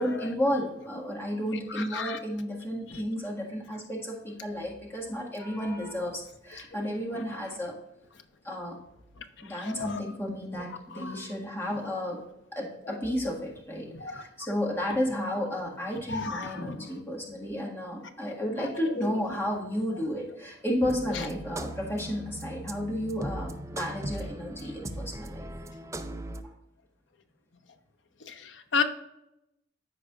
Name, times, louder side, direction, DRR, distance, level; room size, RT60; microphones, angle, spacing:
voice 1, 0.0-7.7 8.4-8.8 9.4-12.2 12.5-25.5, equal, 15° left, 1.7 m, -32 dB
voice 2, 1.7-2.2 2.9-3.0 6.7-6.9 9.4-10.0 10.9-11.3 12.9-13.0 13.9-14.2 16.1-17.0 18.4-19.2 21.1-21.3 28.3-28.8, left 5 dB, 85° left, 0.8 m, -34 dB
sound 1, 20.8-26.4, right 1 dB, 15° right, 0.5 m, -39 dB
13.5 x 4.8 x 2.4 m
head